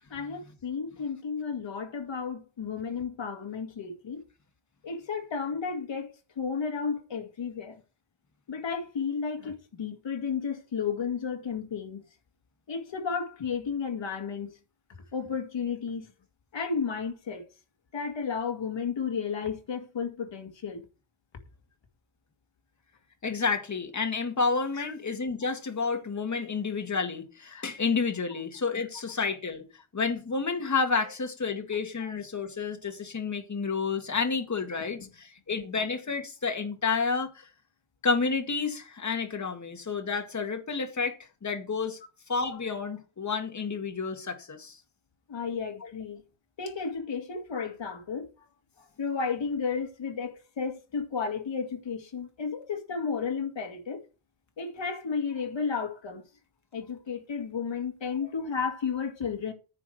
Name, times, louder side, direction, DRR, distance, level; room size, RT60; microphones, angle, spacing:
voice 1, 0.1-4.2 4.8-6.1 6.4-7.8 8.5-12.0 12.7-14.5 15.1-16.1 16.5-17.4 17.9-20.8 24.7-24.9 32.0-32.1 45.3-46.2 46.6-48.3 49.0-54.0 54.6-56.2 56.7-59.5, left 6 dB, 60° left, 2.2 m, -33 dB
voice 2, 23.2-29.7 29.9-37.5 38.0-41.2 41.4-42.0 42.3-44.8 45.8-45.9, left 4 dB, 35° left, 2.0 m, -30 dB
9.9 x 4.8 x 7.8 m
wide cardioid pair, 135°, 50 cm